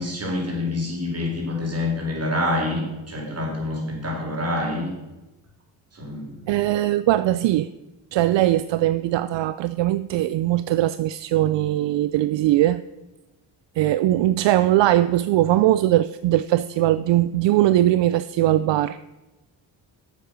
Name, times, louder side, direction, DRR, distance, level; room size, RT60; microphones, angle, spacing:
voice 1, 0.0-4.9 5.9-6.4, left 2 dB, 30° right, -1 dB, 4.3 m, -27 dB
voice 2, 6.5-7.7 8.1-12.8 13.8-19.0, right 14 dB, 70° right, 14 dB, 0.5 m, -20 dB
8.9 x 7.5 x 6.8 m, 1.0 s
cardioid pair, 90°, 46 cm